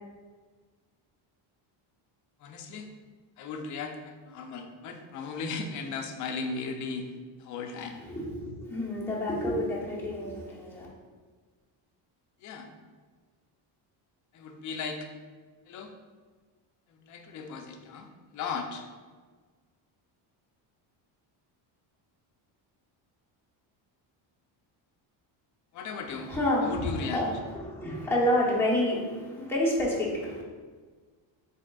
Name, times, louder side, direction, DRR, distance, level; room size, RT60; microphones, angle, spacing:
voice 1, 2.4-2.9 3.4-7.1 7.4-8.0 12.4-12.7 14.3-15.1 15.7-15.9 17.0-18.9 25.7-26.3 26.6-27.2 28.7-28.8, left 4 dB, 40° left, 4 dB, 0.4 m, -36 dB
voice 2, 8.0-10.9 26.1-30.4, left 1 dB, 5° left, -7 dB, 0.8 m, -29 dB
5.0 x 4.1 x 2.2 m, 1.5 s
cardioid pair, 165°, 47 cm